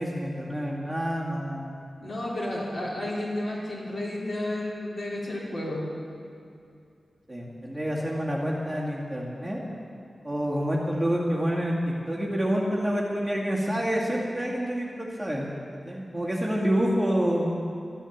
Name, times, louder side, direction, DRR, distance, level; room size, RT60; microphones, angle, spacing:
voice 1, 0.0-1.7 7.3-9.6 10.2-11.8 12.1-15.5 15.9-17.5, equal, 5° right, -5 dB, 2.1 m, -27 dB
voice 2, 2.0-5.8, left 1 dB, 60° left, -6 dB, 3.9 m, -32 dB
13.5 x 11.5 x 7.2 m, 2.5 s
wide cardioid pair, 125°, 0 cm